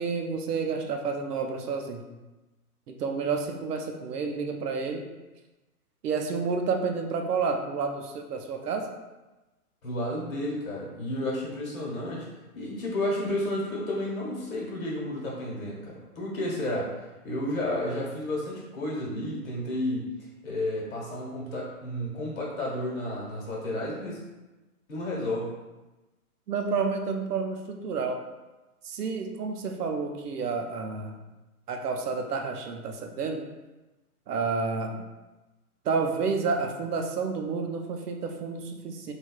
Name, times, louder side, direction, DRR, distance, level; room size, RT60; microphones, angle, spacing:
voice 1, 0.0-2.0 2.9-5.1 6.0-8.9 26.5-28.2 28.8-31.2 31.7-33.4 34.3-35.1 35.8-39.1, right 4 dB, 85° right, 4 dB, 0.6 m, -30 dB
voice 2, 9.8-12.3 12.5-16.9 17.2-20.0 20.4-24.2 24.9-25.5, left 1 dB, 60° left, -4 dB, 1.2 m, -31 dB
3.2 x 2.3 x 2.3 m, 1.1 s
hypercardioid pair, 140°, 45 cm